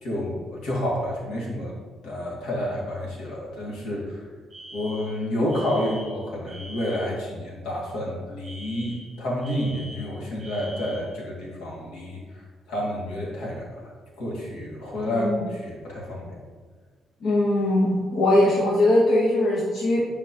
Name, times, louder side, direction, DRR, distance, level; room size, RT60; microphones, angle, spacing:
voice 1, 0.0-1.7 2.0-4.2 4.7-12.2 12.7-13.9 14.2-16.4, left 1 dB, 85° left, -4 dB, 2.2 m, -29 dB
Alarm, 4.5-7.2 8.4-11.2, equal, 15° right, 1.5 m, -43 dB
voice 2, 15.1-15.4 17.2-20.0, left 1 dB, 70° left, -5 dB, 1.3 m, -21 dB
9.8 x 5.0 x 3.0 m, 1.4 s
cardioid pair, 145°, 0 cm